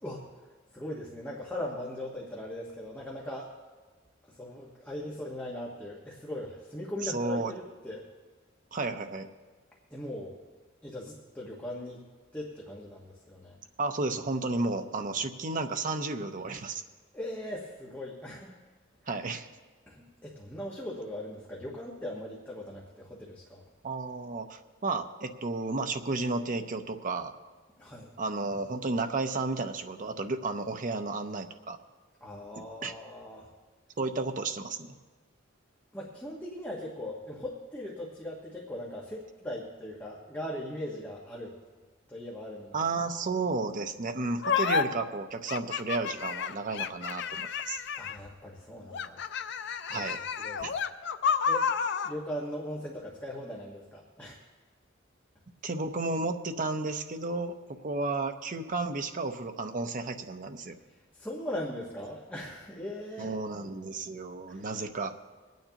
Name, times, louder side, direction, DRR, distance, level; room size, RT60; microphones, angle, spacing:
voice 1, 0.7-3.5 4.3-8.0 9.9-10.3 10.8-12.0 12.3-13.6 17.1-18.6 19.9-23.6 27.8-28.1 32.2-33.5 35.9-41.5 42.1-42.8 48.0-49.2 49.9-50.1 50.4-50.7 51.5-51.7 52.0-54.4 60.9-63.3 64.5-64.7, left 1 dB, 10° left, -4 dB, 1.3 m, -39 dB
voice 2, 7.0-7.5 8.7-9.3 13.8-16.8 19.1-19.5 23.8-27.3 28.2-31.8 32.8-32.9 34.0-34.9 42.7-47.8 49.9-50.2 50.6-50.7 55.6-57.5 57.8-60.8 63.2-65.1, right 3 dB, 40° right, 7 dB, 0.7 m, -32 dB
sound 1, 44.4-44.8 45.5-48.3 48.9-52.1, left 6 dB, 60° left, 0.5 m, -30 dB
24.5 x 9.3 x 2.9 m, 1.4 s
head